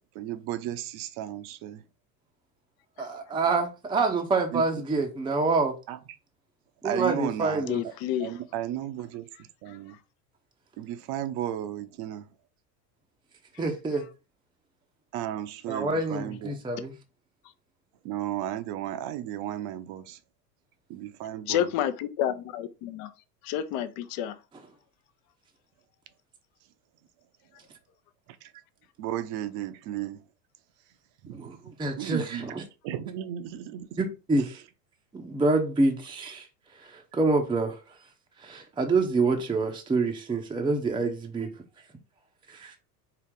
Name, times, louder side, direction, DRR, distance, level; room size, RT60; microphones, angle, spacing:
voice 1, 0.0-1.8 4.5-4.6 5.9-6.0 6.8-7.7 8.2-9.3 9.6-10.0 10.8-12.3 15.1-16.6 18.0-20.2 20.9-21.7 28.4-28.5 29.0-30.2 31.2-31.6 31.9-32.5 32.8-34.0, right 12 dB, 50° right, 0.8 m, -34 dB
voice 2, 3.0-5.7 6.8-7.8 13.6-14.1 15.7-16.9 31.3-32.6 34.0-34.6 35.1-36.5 36.8-37.8 38.4-41.5 42.5-42.7, right 3 dB, 10° right, 0.7 m, -27 dB
voice 3, 7.7-8.4 9.7-9.8 13.5-13.6 21.5-23.1 23.4-24.4, left 11 dB, 50° left, 0.7 m, -30 dB
4.7 x 2.9 x 3.6 m
hypercardioid pair, 95°, 49 cm